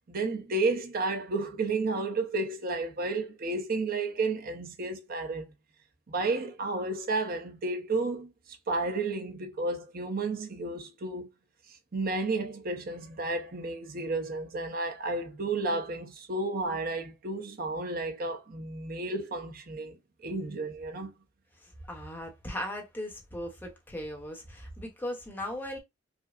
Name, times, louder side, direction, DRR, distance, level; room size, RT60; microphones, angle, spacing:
voice 1, 0.1-5.5 6.1-8.3 8.7-11.3 11.9-20.0 20.2-21.1, right 3 dB, 50° right, 0.7 m, -32 dB
voice 2, 21.6-25.8, left 1 dB, 10° left, 0.9 m, -38 dB
5.0 x 2.0 x 2.5 m
head